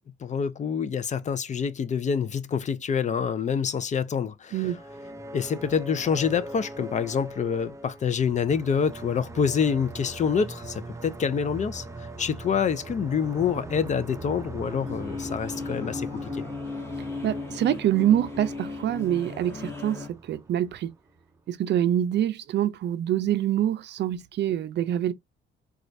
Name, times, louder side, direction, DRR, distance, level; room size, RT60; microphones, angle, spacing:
voice 1, 0.2-4.8 5.3-16.4, left 6 dB, 40° left, 0.4 m, -27 dB
sound 1, 4.5-21.4, right 2 dB, 15° right, 0.5 m, -41 dB
sound 2, 14.6-20.1, left 3 dB, 15° left, 1.2 m, -36 dB
voice 2, 17.2-20.9 21.5-25.1, right 11 dB, 60° right, 0.5 m, -25 dB
4.1 x 2.3 x 2.5 m
cardioid pair, 90°, 20 cm